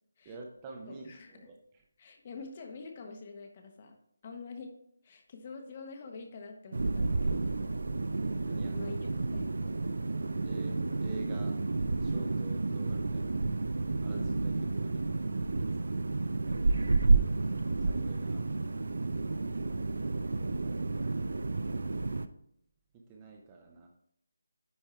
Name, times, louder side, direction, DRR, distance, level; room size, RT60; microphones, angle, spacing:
voice 1, 0.2-1.8 8.5-9.1 10.4-10.8 11.0-11.5 12.0-13.4 14.0-15.9 17.1-17.4 17.9-18.4 20.2-21.5 22.9-23.9, right 3 dB, 15° right, 2 dB, 0.6 m, -49 dB
voice 2, 0.9-1.5 2.0-4.0 4.2-4.7 5.0-7.4 8.7-9.7 14.1-14.3, left 4 dB, 25° left, 4 dB, 0.9 m, -46 dB
sound 1, 6.7-22.3, right 3 dB, 65° right, 0.5 m, -31 dB
9.8 x 3.5 x 4.3 m, 0.72 s
figure-of-eight pair, 175°, 0 cm